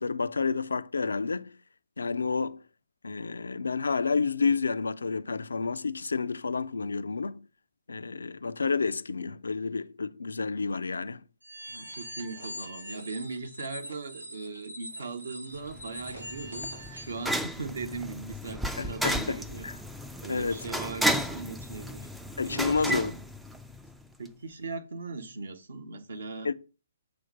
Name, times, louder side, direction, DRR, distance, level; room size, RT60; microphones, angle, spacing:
voice 1, 0.0-1.5 2.0-2.6 3.0-7.5 7.9-11.2 18.7-19.7 20.3-20.6 22.4-23.1 26.4-26.5, left 4 dB, 65° left, 0.4 m, -30 dB
sound 1, 11.4-17.2, equal, 80° right, 2.3 m, -43 dB
voice 2, 11.7-19.7 20.2-22.1 22.4-23.2 24.2-26.5, right 4 dB, 60° right, 1.0 m, -39 dB
sound 2, 15.7-24.0, equal, 5° right, 0.4 m, -33 dB
6.8 x 3.2 x 5.3 m
figure-of-eight pair, 130°, 0 cm